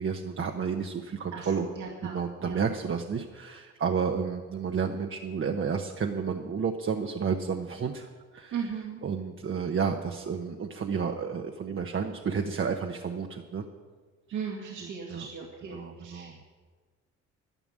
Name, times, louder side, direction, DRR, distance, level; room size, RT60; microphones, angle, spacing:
voice 1, 0.0-1.7 2.0-8.6 9.0-13.6 15.1-15.3 15.7-16.4, right 6 dB, 40° right, 4 dB, 0.9 m, -31 dB
voice 2, 1.3-2.6 8.5-9.0 14.3-16.4, right 6 dB, 80° right, -2 dB, 2.2 m, -38 dB
11.0 x 11.0 x 7.4 m, 1.5 s
cardioid pair, 90°, 30 cm